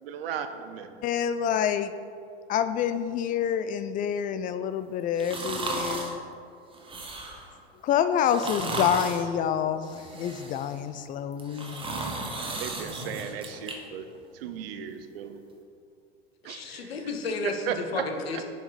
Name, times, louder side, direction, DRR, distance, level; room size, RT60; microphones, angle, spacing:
voice 1, 0.0-0.9 12.4-14.1 14.3-15.4 16.4-16.9 17.7-17.8 18.3-18.4, right 8 dB, 65° right, 8 dB, 0.7 m, -36 dB
voice 2, 1.0-1.9 2.5-6.2 7.8-11.9, left 8 dB, 30° left, 11 dB, 0.4 m, -27 dB
sound 1, 5.2-6.2 6.7-7.5 8.2-9.3 9.8-10.8 11.3-13.7 14.1-14.2, right 2 dB, 15° right, 1.2 m, -35 dB
voice 3, 16.4-18.4, left 3 dB, 75° left, 5 dB, 1.0 m, -33 dB
7.0 x 5.2 x 5.0 m, 2.3 s
hypercardioid pair, 85°, 31 cm